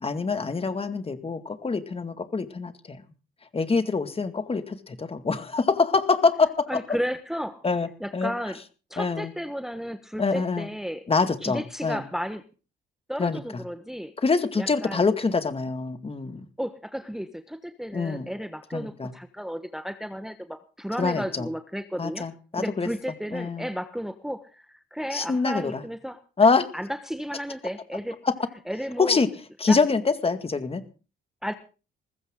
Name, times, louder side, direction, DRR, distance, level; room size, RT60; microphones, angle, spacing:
voice 1, 0.0-3.0 3.5-6.8 7.6-8.3 9.0-9.3 10.2-10.7 11.1-12.0 13.2-13.4 14.2-16.4 17.9-18.3 18.7-19.1 21.0-21.5 22.0-22.9 23.3-23.7 25.1-25.8 26.4-26.6 29.0-29.3 29.6-30.8, left 4 dB, 30° left, 9 dB, 2.1 m, -25 dB
voice 2, 6.7-7.6 8.0-8.6 8.9-11.0 11.4-12.4 13.1-14.1 14.6-15.0 16.6-22.2 22.6-28.2 28.7-29.2 29.7-29.8 31.4-31.5, equal, ahead, 8 dB, 1.3 m, -33 dB
20.0 x 15.5 x 3.8 m, 0.35 s
cardioid pair, 90°, 20 cm